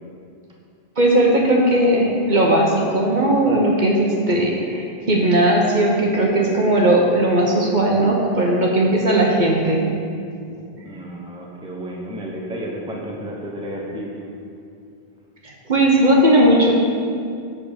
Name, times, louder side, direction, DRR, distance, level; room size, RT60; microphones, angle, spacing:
voice 1, 1.0-9.9 15.4-16.7, right 1 dB, 45° right, -1 dB, 1.1 m, -17 dB
voice 2, 10.8-14.3, equal, 5° right, -2 dB, 0.8 m, -32 dB
7.4 x 5.0 x 6.6 m, 2.3 s
omnidirectional pair, 1.1 m